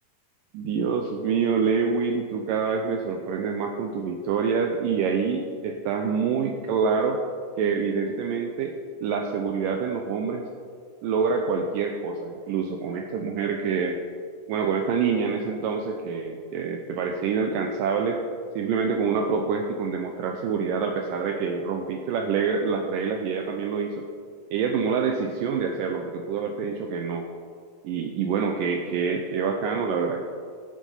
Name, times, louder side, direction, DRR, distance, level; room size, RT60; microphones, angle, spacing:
voice 1, 0.5-7.2 7.6-8.8 9.0-10.4 11.0-14.0 14.5-18.2 18.6-24.1 24.5-27.3 27.8-30.2, right 5 dB, 85° right, 3 dB, 1.9 m, -26 dB
15.5 x 6.3 x 5.5 m, 2.1 s
omnidirectional pair, 4.6 m